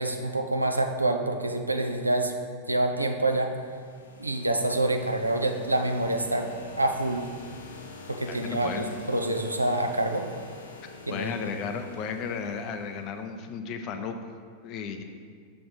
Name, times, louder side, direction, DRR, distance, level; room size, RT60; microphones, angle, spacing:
voice 1, 0.0-2.3 2.7-3.5 4.2-6.5 6.8-7.3 8.1-10.3 11.1-11.5, right 2 dB, 85° right, 5 dB, 0.5 m, -27 dB
sound 1, 3.4-13.2, left 4 dB, 65° left, 0.9 m, -46 dB
voice 2, 8.3-8.9 11.1-14.2 14.6-15.0, left 6 dB, 40° left, 6 dB, 0.5 m, -34 dB
6.8 x 3.3 x 5.5 m, 2.1 s
figure-of-eight pair, 90°, 0 cm